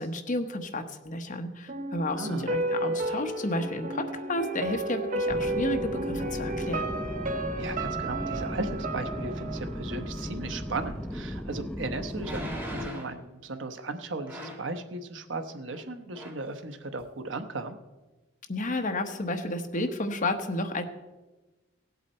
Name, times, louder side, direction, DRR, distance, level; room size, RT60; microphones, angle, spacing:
voice 1, 0.0-6.9 18.5-20.9, left 1 dB, 45° left, 6 dB, 1.1 m, -31 dB
sound 1, 1.7-10.7 11.0-11.1, right 2 dB, 45° right, 1.0 m, -32 dB
voice 2, 2.2-2.6 7.5-17.8, right 2 dB, 80° right, 8 dB, 0.9 m, -36 dB
sound 2, 5.3-12.9, equal, 5° left, 0.4 m, -36 dB
sound 3, 11.2-11.3 12.2-13.2 14.3-14.7 15.7-15.9 16.1-16.5 17.0-17.1, equal, 10° right, 2.1 m, -40 dB
17.0 x 8.2 x 4.3 m, 1.1 s
head